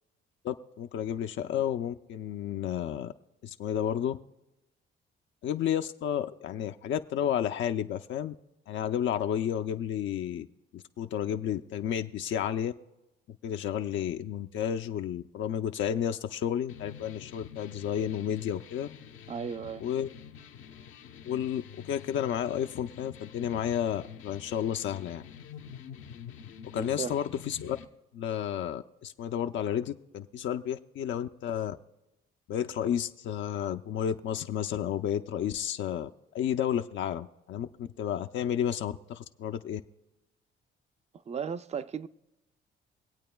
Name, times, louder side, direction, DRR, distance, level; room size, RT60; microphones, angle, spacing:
voice 1, 0.4-3.1 3.4-4.2 5.4-8.3 8.7-10.5 10.7-12.7 13.3-18.9 19.8-20.1 21.2-25.2 26.6-27.8 28.1-31.8 32.5-39.8, left 9 dB, 70° left, 0.5 m, -31 dB
sound 1, 16.7-27.8, left 8 dB, 90° left, 0.9 m, -47 dB
voice 2, 19.3-19.9 26.7-27.2 41.3-42.1, right 7 dB, 35° right, 0.5 m, -35 dB
24.0 x 8.5 x 2.3 m
cardioid pair, 90°, 20 cm